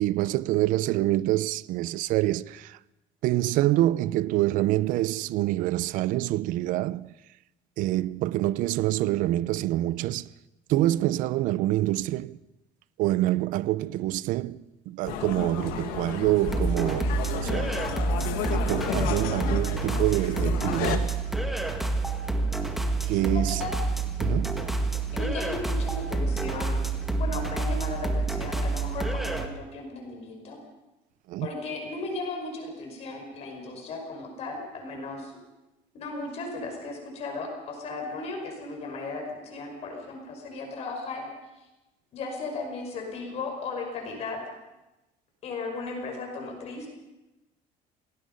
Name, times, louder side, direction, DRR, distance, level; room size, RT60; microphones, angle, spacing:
voice 1, 0.0-2.8 3.2-7.1 7.8-10.3 10.7-12.4 13.0-14.6 14.9-17.7 18.5-21.1 23.0-23.6 24.2-24.7 31.3-31.5, right 15 dB, 65° right, 0.6 m, -26 dB
sound 1, 15.0-21.0, left 10 dB, 80° left, 2.1 m, -33 dB
sound 2, 16.4-29.5, right 3 dB, ahead, 1.7 m, -28 dB
voice 2, 23.1-23.8 25.1-26.8 27.2-30.6 31.4-35.3 35.9-41.3 41.6-41.7 42.1-44.4 45.4-46.9, left 3 dB, 45° left, 5.6 m, -36 dB
27.5 x 19.5 x 5.4 m
cardioid pair, 155°, 15 cm